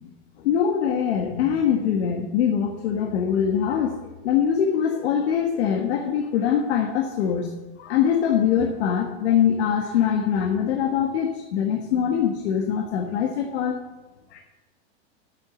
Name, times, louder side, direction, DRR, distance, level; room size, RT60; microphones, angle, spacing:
voice 1, 0.4-4.0 4.2-7.5 7.8-13.8 14.3-14.4, left 8 dB, 65° left, 3 dB, 1.5 m, -23 dB
9.1 x 8.4 x 8.0 m, 1.1 s
supercardioid pair, 160°, 34 cm